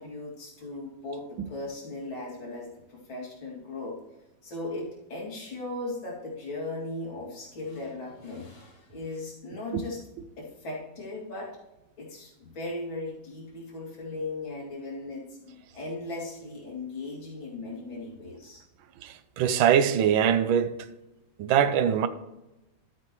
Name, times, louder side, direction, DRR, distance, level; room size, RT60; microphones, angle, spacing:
voice 1, 0.0-4.0 4.4-10.0 10.4-11.6 12.0-18.6, left 2 dB, 85° left, 3.4 m, -37 dB
voice 2, 19.0-20.7 21.4-22.1, right 8 dB, 85° right, 1.5 m, -23 dB
12.0 x 8.4 x 3.1 m
omnidirectional pair, 2.1 m